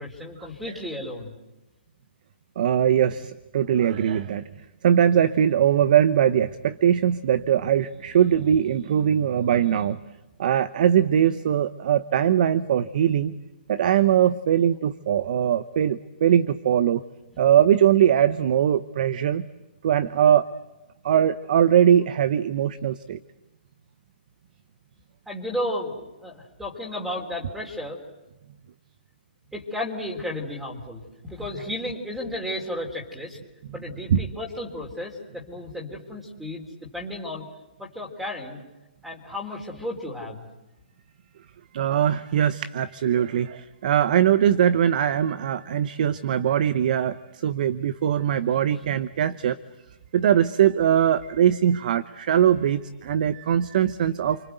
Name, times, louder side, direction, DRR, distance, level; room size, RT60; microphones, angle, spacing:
voice 1, 0.0-1.3 25.3-28.0 29.5-33.4 33.7-36.6 36.9-37.5 37.8-38.6 39.0-40.5, left 1 dB, 5° right, 0 dB, 3.8 m, -33 dB
voice 2, 2.6-4.4 4.8-10.0 10.4-13.3 13.7-17.0 17.4-19.4 19.8-20.5 21.0-23.2 34.1-34.2 41.7-49.6 50.1-54.4, right 9 dB, 50° right, 14 dB, 0.9 m, -21 dB
29.5 x 24.0 x 8.1 m, 1.0 s
hypercardioid pair, 150°, 6 cm